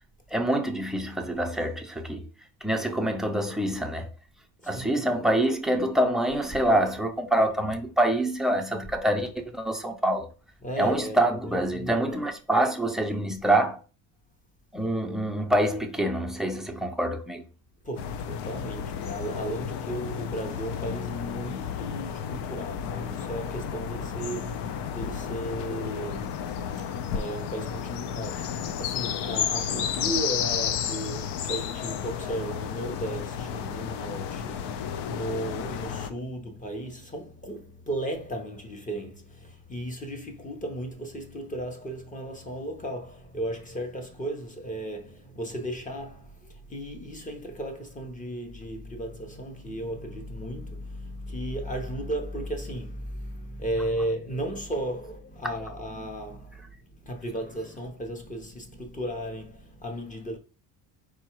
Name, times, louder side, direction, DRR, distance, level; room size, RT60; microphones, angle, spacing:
voice 1, 0.3-2.3 2.6-4.1 4.6-10.3 10.8-13.8 14.7-17.4, right 1 dB, ahead, 0.4 m, -26 dB
voice 2, 4.6-5.1 10.6-12.2 17.8-26.5 26.8-26.9 27.1-60.4, right 1 dB, 15° left, 0.8 m, -35 dB
sound 1, 18.0-36.1, left 8 dB, 65° left, 0.6 m, -32 dB
4.7 x 2.3 x 4.5 m
cardioid pair, 140°, 45 cm